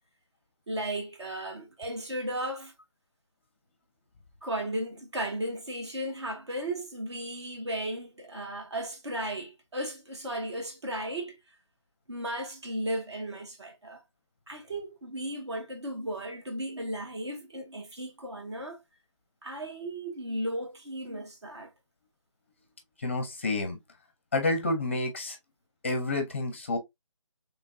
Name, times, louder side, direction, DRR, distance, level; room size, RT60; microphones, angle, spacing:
voice 1, 0.7-2.7 4.4-11.4 12.1-14.0 14.5-18.8 19.4-21.7, right 1 dB, 55° right, 2.1 m, -35 dB
voice 2, 23.0-23.8 24.3-25.4 25.8-26.8, left 2 dB, 25° left, 0.6 m, -29 dB
4.3 x 3.4 x 2.6 m
figure-of-eight pair, 160°, 17 cm